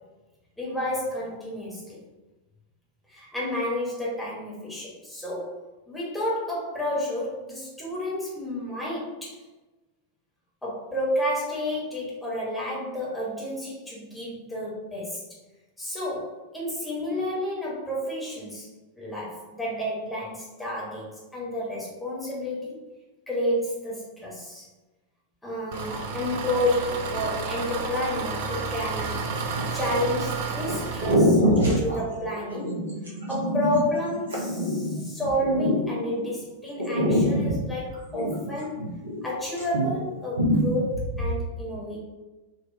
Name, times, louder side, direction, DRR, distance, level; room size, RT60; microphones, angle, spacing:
voice 1, 0.6-2.0 3.1-5.6 5.9-9.4 10.6-15.2 15.8-18.7 19.0-22.8 23.3-24.7 25.4-29.2 29.7-32.8 33.3-38.8 39.2-42.0, left 1 dB, 5° left, -6 dB, 1.0 m, -30 dB
Engine, 25.7-31.1, right 4 dB, 50° right, 0.4 m, -31 dB
sound 1, 29.5-30.0 30.7-30.8 31.0-36.3 36.8-39.2 39.5-40.1 40.3-41.3, equal, 75° right, 0.7 m, -25 dB
3.8 x 2.2 x 2.6 m, 1.1 s
figure-of-eight pair, 90°, 0 cm